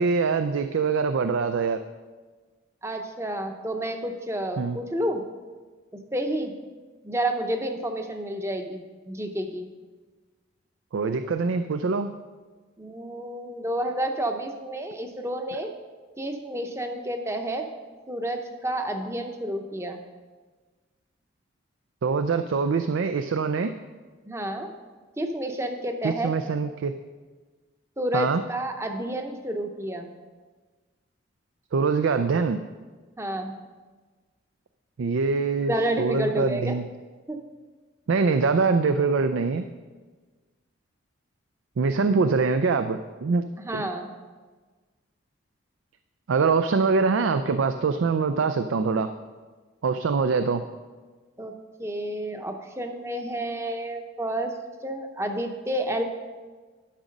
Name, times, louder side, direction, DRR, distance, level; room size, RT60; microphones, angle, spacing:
voice 1, 0.0-1.8 4.6-4.8 10.9-12.1 22.0-23.7 26.0-26.9 28.1-28.4 31.7-32.6 35.0-36.8 38.1-39.7 41.8-43.4 43.7-43.8 46.3-49.1 49.8-50.6, right 4 dB, 80° right, 9 dB, 0.4 m, -24 dB
voice 2, 2.8-5.2 6.1-6.5 7.0-9.7 12.8-15.7 16.2-17.7 18.1-20.0 24.2-24.7 25.2-26.3 28.0-30.1 33.2-33.6 35.6-36.8 37.3-37.4 43.6-44.1 51.4-51.5 51.8-54.5 54.8-56.0, right 1 dB, 15° right, 5 dB, 0.7 m, -30 dB
11.5 x 6.0 x 5.2 m, 1.4 s
head